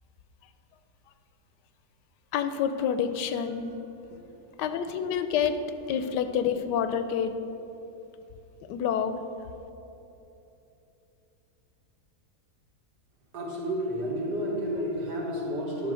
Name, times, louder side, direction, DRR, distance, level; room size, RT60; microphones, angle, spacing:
voice 1, 2.3-3.7 4.6-5.6 5.9-7.3 8.7-9.2, left 8 dB, 85° left, 9 dB, 1.2 m, -28 dB
voice 2, 13.3-15.9, equal, 85° right, -4 dB, 2.2 m, -31 dB
10.0 x 4.3 x 6.2 m, 3.0 s
omnidirectional pair, 1.8 m